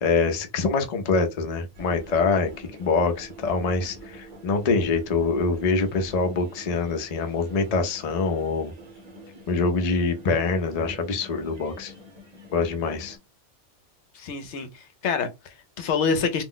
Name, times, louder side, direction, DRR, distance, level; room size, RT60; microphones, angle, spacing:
voice 1, 0.0-8.7 9.5-11.9 12.5-13.2, left 4 dB, 50° left, 0.5 m, -25 dB
sound 1, 1.7-13.2, right 1 dB, 35° right, 0.9 m, -46 dB
voice 2, 14.1-16.4, left 5 dB, 75° left, 0.9 m, -27 dB
2.4 x 2.0 x 3.7 m
omnidirectional pair, 1.2 m